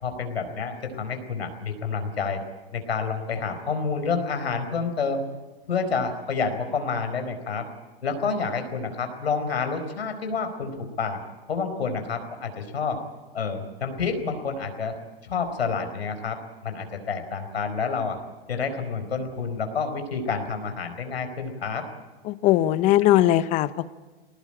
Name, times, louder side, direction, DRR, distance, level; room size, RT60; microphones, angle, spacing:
voice 1, 0.0-2.4 2.7-5.2 5.7-7.7 8.0-11.2 11.5-13.0 13.3-15.0 15.2-18.2 18.5-21.8 23.1-23.2, left 5 dB, 85° left, 6 dB, 4.7 m, -29 dB
voice 2, 22.3-23.9, left 14 dB, 25° left, 16 dB, 0.7 m, -20 dB
21.0 x 19.0 x 8.8 m, 1.2 s
hypercardioid pair, 140°, 31 cm